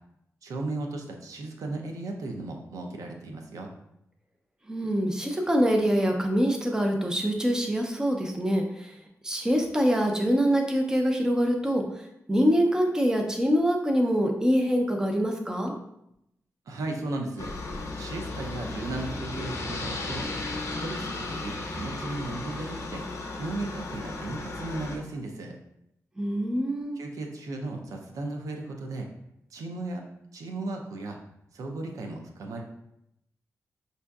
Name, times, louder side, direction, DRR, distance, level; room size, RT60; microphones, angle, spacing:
voice 1, 0.4-3.7 16.7-17.5 18.0-20.3 20.8-23.1 23.4-25.6 26.9-29.1 29.5-30.0 30.3-31.2 31.5-32.6, right 2 dB, 85° right, 3 dB, 0.5 m, -35 dB
voice 2, 4.7-8.9 9.2-15.7 26.2-27.0, equal, 10° right, 2 dB, 0.5 m, -25 dB
Aircraft, 17.4-25.0, left 2 dB, 70° left, 0.7 m, -35 dB
5.4 x 2.6 x 2.3 m, 0.80 s
wide cardioid pair, 105°, 6 cm